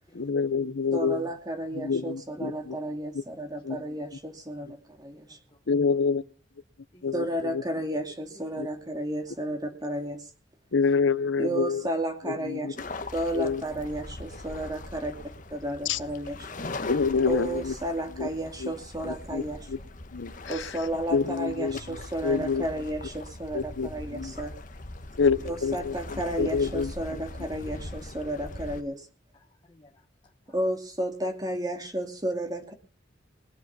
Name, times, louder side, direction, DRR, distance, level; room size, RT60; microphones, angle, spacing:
voice 1, 0.1-1.2 1.7-2.8 3.6-3.8 5.7-6.2 7.0-7.6 8.6-8.7 10.7-11.8 12.2-12.7 13.3-13.6 15.9-16.0 16.9-17.7 18.2-18.3 18.6-18.7 19.0-19.4 19.7-19.8 20.1-20.7 21.1-22.0 22.2-22.6 23.5-24.3 25.2-27.2, left 5 dB, 85° left, 0.7 m, -27 dB
voice 2, 0.9-5.4 7.1-10.3 11.4-12.7 13.1-15.1 15.5-16.5 17.3-19.7 20.5-24.5 25.4-29.1 30.5-32.7, right 1 dB, 20° right, 2.4 m, -32 dB
voice 3, 5.1-5.6 5.9-6.0 6.9-7.1 8.3-8.6 16.5-17.1 25.1-25.2 27.7-27.8 28.2-28.4 29.3-30.5, left 1 dB, 25° left, 1.3 m, -57 dB
sound 1, 12.8-28.8, left 2 dB, 45° left, 1.1 m, -41 dB
21.0 x 8.0 x 6.1 m
head